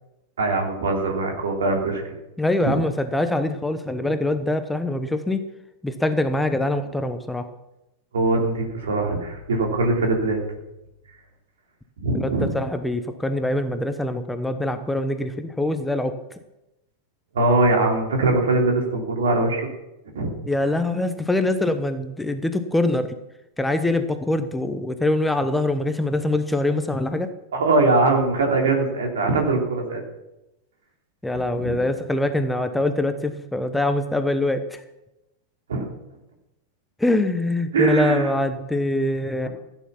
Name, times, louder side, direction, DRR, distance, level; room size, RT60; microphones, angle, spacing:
voice 1, 0.4-2.0 2.6-2.7 8.1-10.4 12.0-12.5 17.3-19.7 20.1-20.3 27.5-30.0 31.3-31.8 35.7-35.8 37.7-38.3, right 2 dB, 65° right, 1 dB, 3.3 m, -22 dB
voice 2, 2.4-5.4 5.8-7.5 12.1-16.2 20.5-23.2 23.6-27.3 31.2-34.8 37.0-39.5, left 1 dB, 5° left, 8 dB, 0.9 m, -24 dB
15.5 x 9.3 x 5.8 m, 0.92 s
figure-of-eight pair, 90°, 0 cm